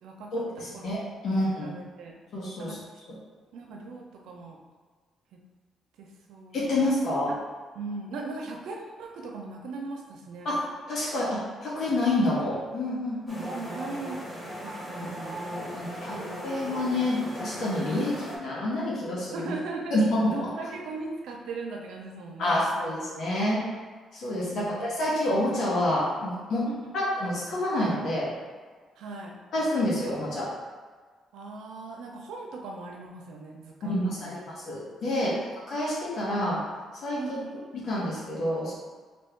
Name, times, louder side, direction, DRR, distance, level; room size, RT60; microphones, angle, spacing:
voice 1, 0.0-0.9 1.2-2.2 2.6-2.8 3.5-4.6 5.3-5.4 6.0-6.8 7.3-7.4 7.7-10.5 13.4-14.3 14.6-16.8 19.3-20.0 20.3-22.9 24.5-24.8 26.7-26.9 29.0-29.4 31.3-34.4 35.1-35.5 37.2-37.6, right 3 dB, 80° right, 0 dB, 0.7 m, -39 dB
voice 2, 0.6-1.7 2.3-2.8 6.5-7.3 10.4-10.6 10.9-13.4 15.8-16.2 16.4-19.5 19.9-20.5 22.4-23.6 24.1-26.6 26.9-28.3 29.5-30.5 33.8-34.4 34.7-35.4 35.7-36.6 37.0-37.2 37.8-38.7, left 1 dB, 65° left, -6 dB, 1.1 m, -28 dB
sound 1, 13.3-18.4, equal, 5° left, 1.4 m, -37 dB
3.1 x 2.6 x 4.5 m, 1.5 s
cardioid pair, 90°, 0 cm